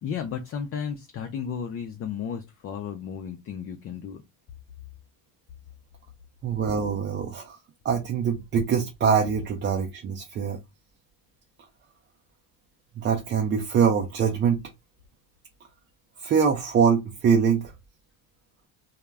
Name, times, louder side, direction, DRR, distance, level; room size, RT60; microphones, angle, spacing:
voice 1, 0.0-4.2, left 7 dB, 35° left, 0.4 m, -33 dB
voice 2, 6.4-7.6 7.8-10.6 13.0-14.7 16.2-17.7, right 6 dB, 30° right, 0.4 m, -23 dB
2.2 x 2.1 x 3.3 m
supercardioid pair, 115°, 42 cm